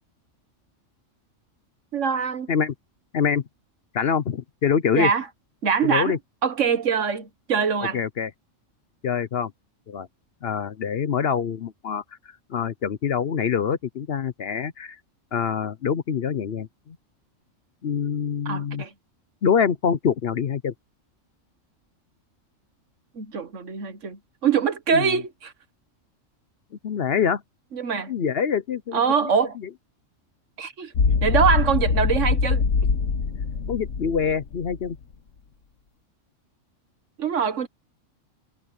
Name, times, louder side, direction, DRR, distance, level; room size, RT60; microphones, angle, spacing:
voice 1, 1.9-2.5 4.9-5.3 5.6-6.2 6.4-8.0 18.4-18.9 23.1-25.5 27.7-28.1 28.9-29.6 30.6-30.9 31.2-32.7 37.2-37.7, right 6 dB, 70° right, 1.6 m, -23 dB
voice 2, 3.9-5.1 5.8-6.2 7.9-8.3 9.0-9.5 9.9-10.1 10.4-12.0 12.5-15.0 15.3-17.0 17.8-18.8 19.4-20.7 24.9-25.1 26.8-27.4 28.1-29.3 33.7-35.0, left 7 dB, 55° left, 0.9 m, -25 dB
sound 1, 31.0-34.9, left 5 dB, 75° left, 1.7 m, -23 dB
omnidirectional pair, 1.3 m